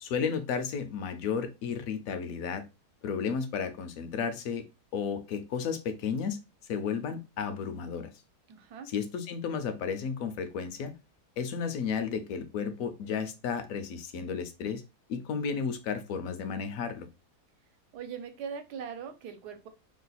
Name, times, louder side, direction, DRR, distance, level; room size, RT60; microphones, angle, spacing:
voice 1, 0.0-2.6 3.0-4.6 4.9-6.4 6.7-8.1 8.9-10.9 11.4-14.8 15.1-17.1, left 6 dB, 70° left, 0.9 m, -33 dB
voice 2, 8.5-8.9 17.9-19.7, right 7 dB, 80° right, 1.2 m, -40 dB
3.0 x 2.3 x 3.9 m
omnidirectional pair, 1.7 m